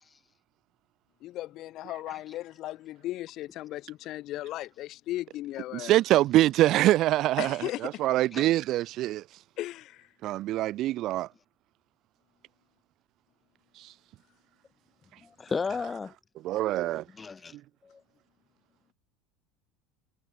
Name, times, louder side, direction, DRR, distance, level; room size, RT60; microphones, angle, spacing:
voice 1, 1.2-5.9 7.4-8.0 9.6-10.1, left 15 dB, 40° left, 4.5 m, -36 dB
voice 2, 5.7-9.2 10.2-11.3 13.8-13.9 16.4-17.0 17.5-17.6, right 15 dB, 40° right, 0.5 m, -24 dB
voice 3, 15.2-16.1 17.2-17.6 17.8-18.0, left 5 dB, 15° left, 0.8 m, -34 dB
supercardioid pair, 155°, 0 cm